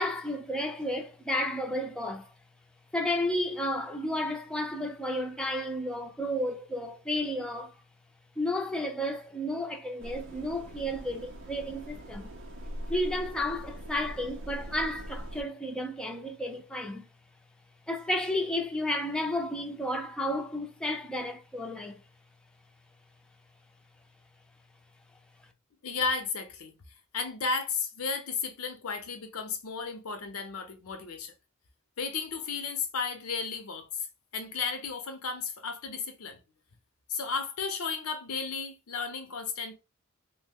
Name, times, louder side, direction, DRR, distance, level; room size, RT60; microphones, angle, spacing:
voice 1, 0.0-2.3 2.9-7.7 8.4-12.3 12.9-17.1 17.9-22.0, left 1 dB, 5° left, 0.4 m, -32 dB
sound 1, 10.0-15.4, equal, 65° right, 0.5 m, -42 dB
voice 2, 25.8-26.7 27.1-31.3 32.0-33.9 34.3-36.4 37.1-39.7, left 5 dB, 85° left, 0.6 m, -33 dB
3.0 x 2.0 x 3.4 m
head